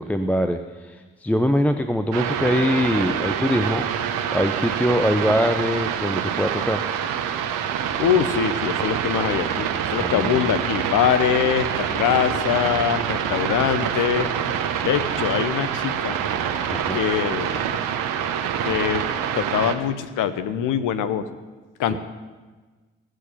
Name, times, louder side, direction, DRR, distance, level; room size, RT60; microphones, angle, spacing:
voice 1, 0.0-3.9 4.3-6.8 10.0-10.5 16.7-17.0, equal, 5° left, 8 dB, 0.6 m, -23 dB
sound 1, 2.1-19.8, right 8 dB, 70° right, 1.1 m, -26 dB
voice 2, 8.0-14.3 14.8-16.2 16.9-17.5 18.6-19.0 19.3-21.3 21.8-22.0, left 9 dB, 65° left, 12 dB, 0.9 m, -23 dB
16.5 x 6.4 x 7.0 m, 1.3 s
hypercardioid pair, 45°, 33 cm